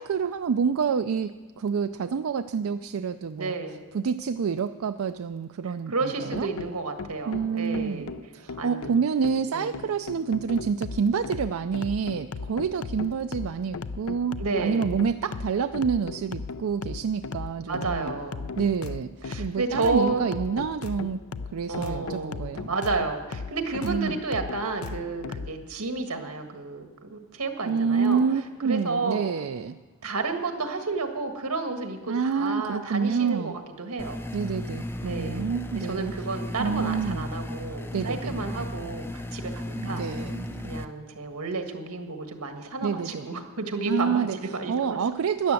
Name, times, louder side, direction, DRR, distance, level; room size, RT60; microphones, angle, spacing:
voice 1, 0.0-3.5 3.9-6.5 7.3-18.1 18.6-19.1 19.4-21.2 21.5-22.7 23.8-24.2 27.6-29.8 32.1-33.5 34.3-36.1 36.6-37.3 37.9-38.3 39.8-40.7 42.8-43.3 43.9-44.4 44.7-45.5, right 6 dB, 70° right, 10 dB, 0.4 m, -28 dB
voice 2, 3.4-3.8 5.9-8.1 8.6-9.0 9.5-9.8 14.4-14.9 17.7-18.5 19.2-20.3 21.7-28.2 28.6-29.2 30.0-34.2 35.0-40.0 40.6-45.0, right 3 dB, 90° right, 6 dB, 1.6 m, -31 dB
sound 1, 6.3-25.5, left 4 dB, 70° left, 0.5 m, -37 dB
sound 2, 34.0-40.8, left 1 dB, 10° left, 0.4 m, -35 dB
12.5 x 10.5 x 7.6 m, 1.3 s
head